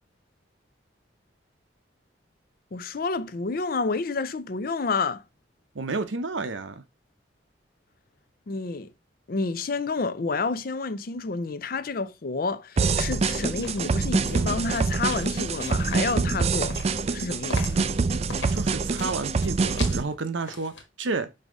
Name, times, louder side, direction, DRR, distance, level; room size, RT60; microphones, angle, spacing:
voice 1, 2.7-5.2 8.5-8.9 9.3-16.8 17.1-17.8, left 4 dB, 50° left, 0.5 m, -29 dB
voice 2, 5.7-6.8 18.5-21.3, right 3 dB, 80° right, 0.8 m, -31 dB
sound 1, 12.8-20.0, right 4 dB, 35° right, 0.3 m, -25 dB
sound 2, 13.6-20.8, left 3 dB, 75° left, 1.5 m, -42 dB
5.5 x 3.6 x 5.0 m
head